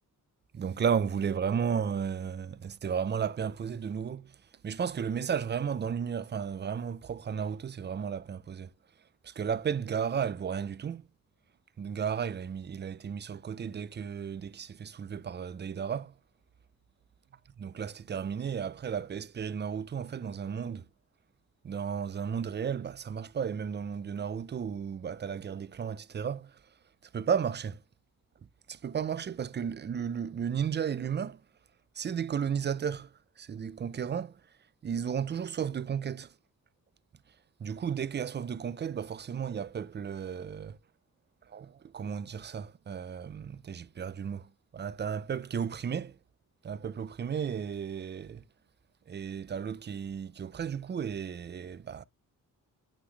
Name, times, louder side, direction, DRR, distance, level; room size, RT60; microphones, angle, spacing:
voice 1, 0.5-4.4 4.6-8.7 9.2-11.1 11.8-16.1 17.6-20.9 21.6-26.6 27.1-27.8 28.7-31.4 31.9-34.4 34.8-36.3 37.6-40.8 41.5-46.2 46.6-48.4 49.1-52.0, right 7 dB, 30° right, 0.4 m, -34 dB
8.8 x 3.9 x 3.2 m
wide cardioid pair, 120°, 33 cm